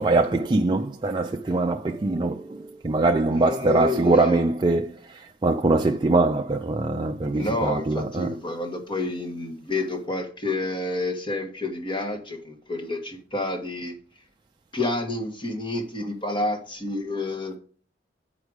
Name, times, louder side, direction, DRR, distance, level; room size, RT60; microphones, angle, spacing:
voice 1, 0.0-8.3, right 2 dB, 25° right, 0.4 m, -23 dB
voice 2, 3.3-4.4 7.3-13.9 14.7-17.6, left 2 dB, 30° left, 1.5 m, -29 dB
7.9 x 5.0 x 6.3 m
head